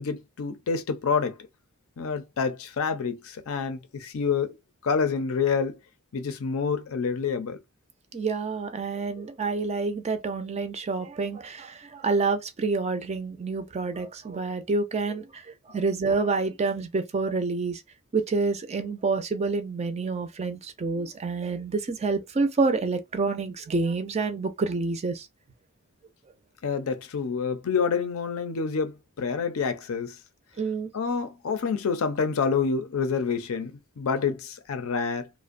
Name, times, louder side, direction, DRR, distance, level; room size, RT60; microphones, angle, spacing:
voice 1, 0.0-1.4 2.0-4.6 4.8-5.8 6.1-7.6 26.6-30.2 30.9-35.3, left 5 dB, 65° left, 0.5 m, -27 dB
voice 2, 8.1-17.8 18.1-25.3 30.6-30.9, right 4 dB, 30° right, 0.4 m, -28 dB
2.5 x 2.1 x 2.4 m
head